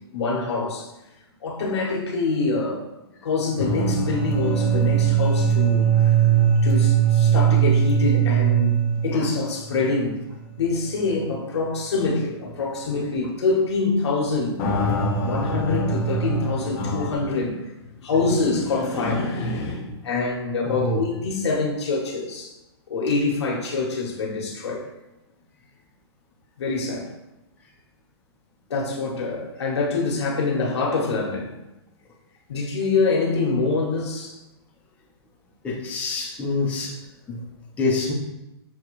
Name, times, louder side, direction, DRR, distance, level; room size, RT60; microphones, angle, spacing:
voice 1, 0.1-0.9 1.4-2.8 3.2-6.3 6.6-10.2 10.6-14.6 15.2-22.5 22.9-24.8 26.6-27.1 28.7-31.5 32.5-34.4, left 3 dB, 80° left, -2 dB, 1.5 m, -25 dB
sound 1, 3.6-10.1 10.4-10.5 11.1-11.2 14.6-17.1, right 7 dB, 35° left, 1.0 m, -21 dB
voice 2, 20.6-21.0 35.6-37.0 37.3-37.4 37.8-38.1, left 3 dB, 10° left, -5 dB, 0.7 m, -26 dB
6.7 x 2.4 x 3.1 m, 0.96 s
hypercardioid pair, 155°, 14 cm